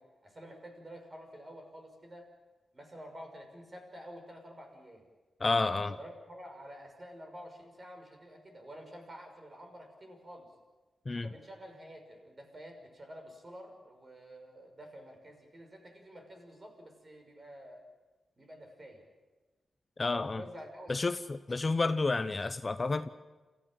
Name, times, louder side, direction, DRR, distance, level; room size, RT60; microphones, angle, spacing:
voice 1, 0.0-2.3 2.7-5.1 5.9-10.5 11.2-17.8 18.4-19.1 20.1-21.2, equal, 35° right, 4 dB, 6.0 m, -49 dB
voice 2, 5.4-5.9 11.1-11.3 20.0-20.4 20.9-21.2 21.5-23.1, left 3 dB, 30° left, 11 dB, 0.8 m, -30 dB
27.5 x 15.0 x 9.0 m, 1.2 s
wide cardioid pair, 100°, 0 cm